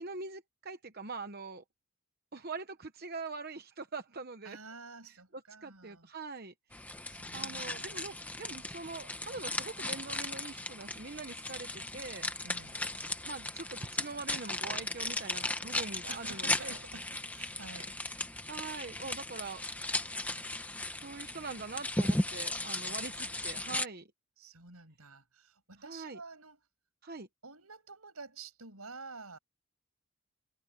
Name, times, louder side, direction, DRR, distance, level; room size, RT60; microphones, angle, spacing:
voice 1, 0.0-1.6 2.3-4.6 5.6-6.5 7.3-12.3 13.2-16.8 18.5-19.6 19.9-20.3 21.0-24.1 25.8-26.2 27.0-27.3, right 4 dB, 45° right, 1.0 m, -43 dB
voice 2, 4.4-6.1 7.0-8.1 12.4-12.9 16.1-18.0 24.4-26.6 27.4-29.4, right 3 dB, 85° right, 6.9 m, -50 dB
sound 1, 6.7-23.9, left 2 dB, 5° left, 1.0 m, -37 dB
head